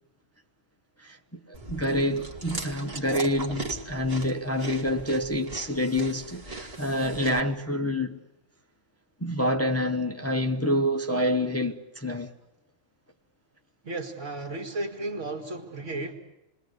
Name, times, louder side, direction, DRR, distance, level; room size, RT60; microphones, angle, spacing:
voice 1, 1.0-8.2 9.2-12.3, left 1 dB, 15° left, 0.9 m, -27 dB
sound 1, 1.3-7.0, right 3 dB, 55° left, 3.6 m, -52 dB
Chewing mastication, 1.5-7.4, right 2 dB, 50° right, 2.4 m, -39 dB
voice 2, 13.8-16.1, right 2 dB, 75° right, 2.4 m, -34 dB
29.0 x 21.0 x 8.2 m
omnidirectional pair, 1.3 m